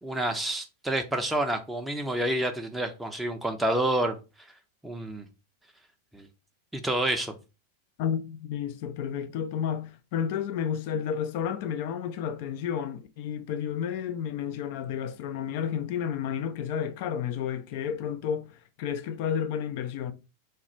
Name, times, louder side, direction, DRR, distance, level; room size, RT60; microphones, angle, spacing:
voice 1, 0.0-4.2 4.8-5.2 6.1-6.3 6.7-7.3, right 1 dB, 5° right, 0.5 m, -28 dB
voice 2, 8.0-20.1, left 8 dB, 50° left, 0.4 m, -31 dB
3.2 x 2.4 x 4.2 m
figure-of-eight pair, 90°, 0 cm